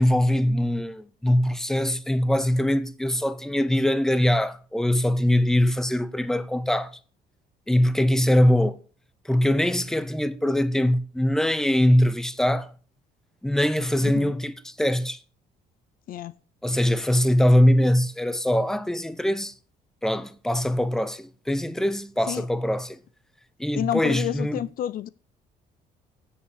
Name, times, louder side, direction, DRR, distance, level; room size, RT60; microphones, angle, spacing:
voice 1, 0.0-7.0 7.7-8.8 9.2-12.7 13.4-15.2 16.6-19.5 20.0-23.0 23.6-24.6, left 1 dB, 5° left, 0.8 m, -22 dB
voice 2, 14.0-14.3 16.1-16.3 22.3-22.4 23.8-25.1, left 11 dB, 60° left, 0.5 m, -29 dB
8.5 x 7.5 x 8.1 m
cardioid pair, 110°, 17 cm